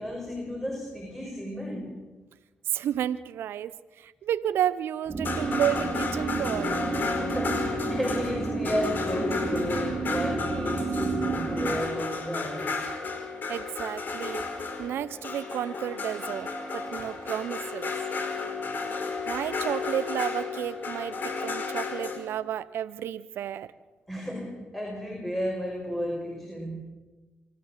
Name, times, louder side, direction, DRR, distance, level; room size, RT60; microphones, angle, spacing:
voice 1, 0.0-2.0 7.2-12.9 24.1-26.8, equal, 5° left, 0 dB, 5.8 m, -33 dB
voice 2, 2.7-6.8 13.5-14.5 14.8-18.0 19.3-23.7, right 10 dB, 75° right, 15 dB, 0.6 m, -31 dB
sound 1, 5.0-22.2, left 4 dB, 55° left, 4.6 m, -33 dB
sound 2, 5.1-11.8, right 4 dB, 35° right, 2.6 m, -31 dB
25.5 x 14.5 x 7.4 m, 1.2 s
supercardioid pair, 60°, 4 cm